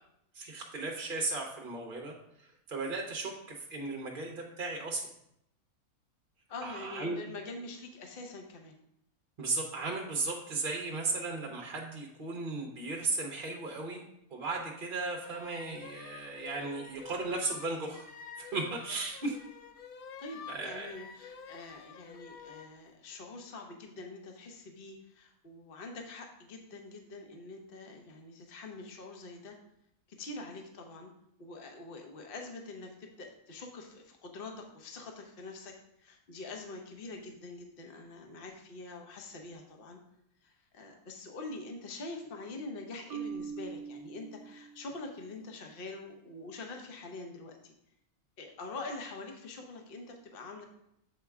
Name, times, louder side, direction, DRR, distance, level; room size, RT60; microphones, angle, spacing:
voice 1, 0.3-5.0 6.6-7.2 9.4-14.0 14.3-18.0 18.4-19.4 20.5-20.9, right 3 dB, 45° right, 0 dB, 0.9 m, -36 dB
voice 2, 6.5-8.7 20.2-29.6 30.2-31.1 31.4-40.0 40.4-47.7 48.4-50.6, left 3 dB, 45° left, 3 dB, 1.0 m, -45 dB
sound 1, 15.2-22.7, left 6 dB, 85° left, 0.4 m, -49 dB
Marimba xylophone, 43.1-45.1, right 6 dB, 80° right, 1.0 m, -42 dB
7.8 x 4.5 x 3.5 m, 0.78 s
omnidirectional pair, 1.5 m